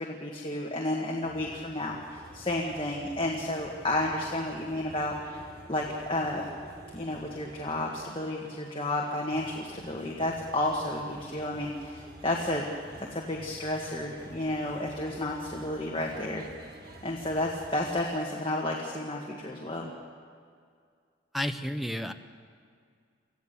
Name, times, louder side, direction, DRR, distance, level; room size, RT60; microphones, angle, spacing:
voice 1, 0.0-5.1 5.7-6.4 6.9-12.6 13.0-16.4 17.0-19.9, left 1 dB, 30° left, -2 dB, 1.7 m, -31 dB
sound 1, 1.2-18.0, right 1 dB, 50° right, 2.1 m, -50 dB
voice 2, 21.3-22.1, equal, ahead, 8 dB, 0.7 m, -31 dB
25.0 x 15.5 x 6.9 m, 2.2 s
head